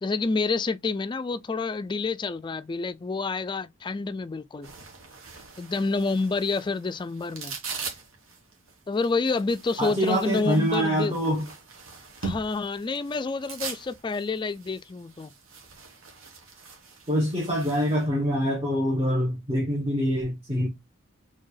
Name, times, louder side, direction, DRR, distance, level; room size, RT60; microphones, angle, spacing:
voice 1, 0.0-4.7 5.6-7.5 8.9-11.2 12.2-15.3, left 3 dB, 25° left, 0.3 m, -28 dB
sound 1, 4.6-18.1, right 4 dB, 85° right, 1.5 m, -42 dB
voice 2, 9.8-11.5 17.1-20.7, equal, 25° right, 1.3 m, -25 dB
4.4 x 3.3 x 3.3 m
head